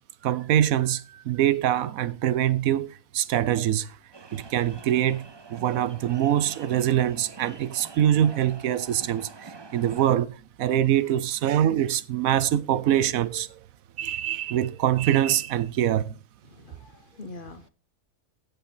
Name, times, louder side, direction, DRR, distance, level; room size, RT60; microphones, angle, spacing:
voice 1, 0.2-4.0 4.3-13.6 14.0-16.2, right 11 dB, 90° right, 1.1 m, -24 dB
sound 1, 4.1-10.2, right 4 dB, 35° right, 0.4 m, -45 dB
voice 2, 16.4-17.7, left 3 dB, 45° left, 1.1 m, -44 dB
15.5 x 6.9 x 4.4 m
omnidirectional pair, 1.4 m